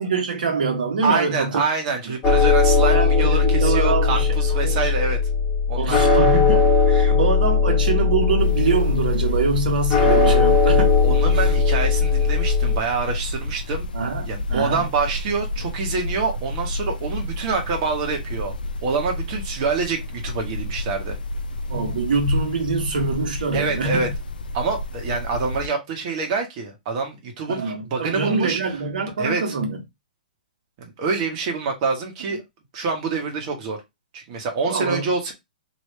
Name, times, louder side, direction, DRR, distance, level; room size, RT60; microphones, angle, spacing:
voice 1, 0.0-1.6 2.1-2.2 2.9-4.9 5.8-11.0 11.3-11.5 13.9-14.9 21.7-24.1 27.5-29.8 34.7-35.1, right 4 dB, 75° right, 1.6 m, -25 dB
voice 2, 1.0-5.2 5.7-6.0 11.0-13.9 14.3-18.5 18.8-21.2 23.5-24.1 24.5-28.6 29.2-29.5 30.8-32.4 32.7-33.8 34.1-35.3, right 4 dB, 45° right, 1.4 m, -26 dB
sound 1, 2.2-12.8, left 5 dB, 25° left, 1.4 m, -18 dB
sound 2, 8.4-25.7, left 1 dB, 85° left, 0.5 m, -30 dB
3.2 x 3.0 x 3.2 m
hypercardioid pair, 140°, 5 cm